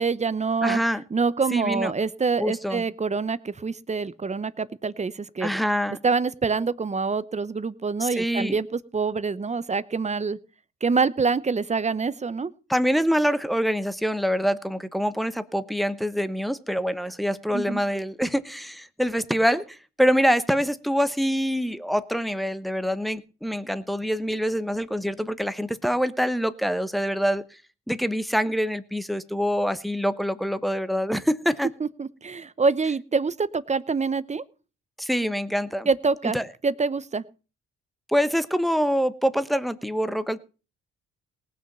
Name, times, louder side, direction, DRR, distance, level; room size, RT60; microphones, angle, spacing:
voice 1, 0.0-0.8 1.1-5.5 6.0-10.4 10.8-12.5 17.5-17.8 31.8-34.4 35.9-36.4 36.6-37.2, right 4 dB, 25° right, 17 dB, 0.8 m, -26 dB
voice 2, 0.6-1.0 1.5-1.9 2.4-2.8 5.4-6.0 8.0-8.6 12.7-27.4 27.9-31.7 35.0-35.9 36.2-36.5 38.1-40.4, equal, ahead, 13 dB, 1.0 m, -25 dB
18.5 x 6.4 x 6.8 m, 0.35 s
cardioid pair, 90°, 30 cm